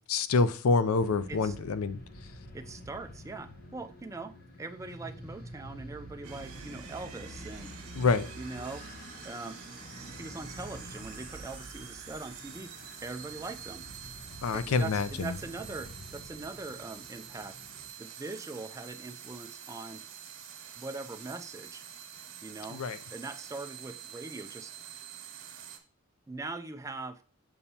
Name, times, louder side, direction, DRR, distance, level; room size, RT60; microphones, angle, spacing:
voice 1, 0.1-2.0 7.9-8.2 14.4-15.3 22.7-23.0, left 4 dB, 75° left, 0.5 m, -26 dB
sound 1, 0.9-17.9, equal, 40° left, 1.0 m, -48 dB
voice 2, 2.5-7.7 8.4-8.8 9.2-9.6 10.0-13.8 14.5-17.6 18.0-20.0 20.8-21.8 22.4-22.8 23.1-24.7 26.3-27.2, right 3 dB, 15° right, 0.3 m, -42 dB
sound 2, 6.2-25.8, right 8 dB, 70° right, 1.4 m, -47 dB
7.0 x 5.5 x 2.8 m
head